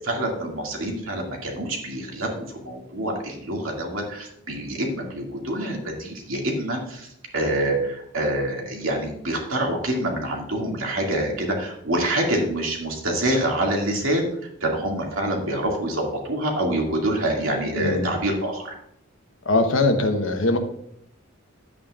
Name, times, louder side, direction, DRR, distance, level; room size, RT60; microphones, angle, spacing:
voice 1, 0.0-7.1 7.3-14.3 14.6-18.8, right 1 dB, 80° right, 0 dB, 2.3 m, -26 dB
voice 2, 17.8-18.1 19.4-20.6, left 2 dB, 70° left, 6 dB, 1.1 m, -21 dB
11.0 x 8.7 x 2.5 m, 0.73 s
head